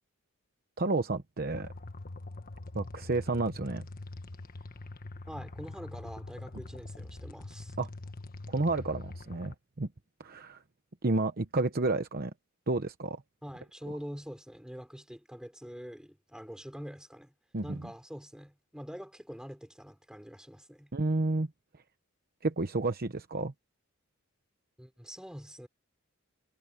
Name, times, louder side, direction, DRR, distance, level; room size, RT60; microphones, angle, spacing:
voice 1, 0.8-1.7 2.7-3.9 7.8-7.9 8.5-9.9 10.2-10.6 11.0-12.3 12.7-13.2 17.5-17.8 20.9-21.5 22.4-23.5, right 2 dB, 45° right, 1.0 m, -31 dB
sound 1, 1.5-9.5, left 2 dB, 45° left, 1.5 m, -44 dB
voice 2, 5.3-7.8 13.4-17.3 17.6-20.9 24.8-25.7, equal, 5° right, 5.1 m, -45 dB
head